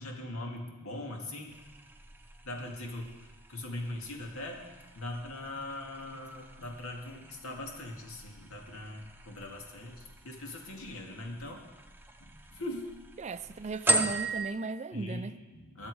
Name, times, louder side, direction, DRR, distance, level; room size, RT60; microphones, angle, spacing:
voice 1, 0.0-1.6 2.4-3.1 3.5-4.6 4.9-11.6 12.2-12.9 14.9-15.9, left 1 dB, 80° left, 2.1 m, -41 dB
sound 1, 1.5-14.5, right 2 dB, 10° right, 0.8 m, -39 dB
voice 2, 13.2-15.3, right 4 dB, 35° right, 0.4 m, -36 dB
21.5 x 7.3 x 4.8 m
head